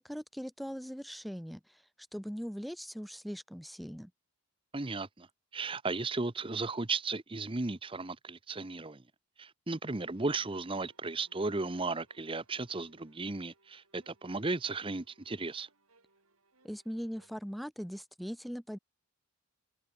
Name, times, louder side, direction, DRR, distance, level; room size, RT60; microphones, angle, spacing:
voice 1, 0.0-1.8 2.1-4.1 16.6-18.8, equal, ahead, 0.9 m, -40 dB
voice 2, 4.7-5.3 5.5-9.0 9.4-15.7, right 3 dB, 25° right, 0.8 m, -35 dB
sound 1, 10.1-17.4, right 2 dB, 85° right, 8.0 m, -68 dB
head